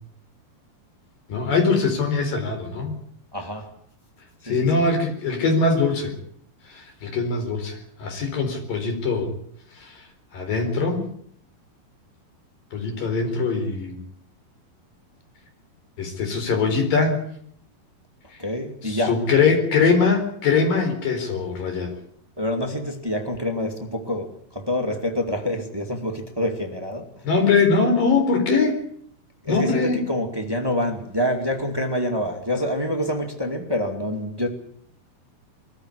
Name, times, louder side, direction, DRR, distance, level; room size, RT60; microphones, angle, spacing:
voice 1, 1.3-3.0 4.4-6.1 6.7-9.3 9.8-10.0 10.3-11.1 12.7-14.0 16.0-17.2 18.8-21.9 27.2-28.8 29.5-30.0, left 4 dB, 60° left, 5.8 m, -22 dB
voice 2, 3.3-3.7 4.4-4.7 18.4-19.2 22.4-27.1 29.4-34.5, left 1 dB, 10° right, 1.1 m, -26 dB
21.5 x 14.5 x 9.8 m
omnidirectional pair, 4.6 m